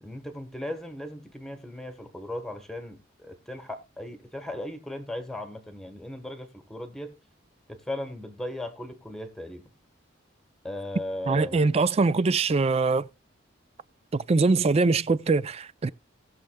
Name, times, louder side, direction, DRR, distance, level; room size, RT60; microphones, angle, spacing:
voice 1, 0.0-7.1 7.7-9.6 10.6-11.6, left 1 dB, ahead, 1.2 m, -37 dB
voice 2, 11.3-13.1 14.1-15.9, right 3 dB, 30° right, 0.4 m, -23 dB
19.5 x 6.5 x 2.2 m
head